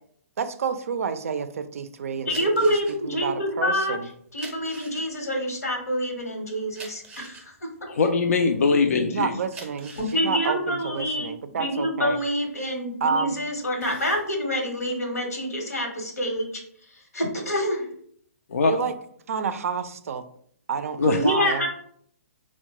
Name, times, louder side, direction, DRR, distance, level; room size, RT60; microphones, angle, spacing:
voice 1, 0.4-2.5 3.0-4.1 9.1-12.2 13.0-13.4 18.6-18.9 19.3-20.3 20.7-21.7, right 6 dB, 65° right, 11 dB, 0.4 m, -29 dB
sound 1, 2.2-8.8 9.3-13.2 13.5-14.3, right 3 dB, 10° right, 0.6 m, -45 dB
voice 2, 2.3-4.0 4.3-7.7 10.0-11.3 11.6-16.5 16.9-17.8 21.1-21.7, equal, 85° left, 1 dB, 1.0 m, -26 dB
voice 3, 7.9-9.3 18.5-18.8 21.0-21.2, left 4 dB, 70° left, 5 dB, 0.3 m, -21 dB
3.6 x 2.1 x 2.9 m, 0.63 s
hypercardioid pair, 140°, 8 cm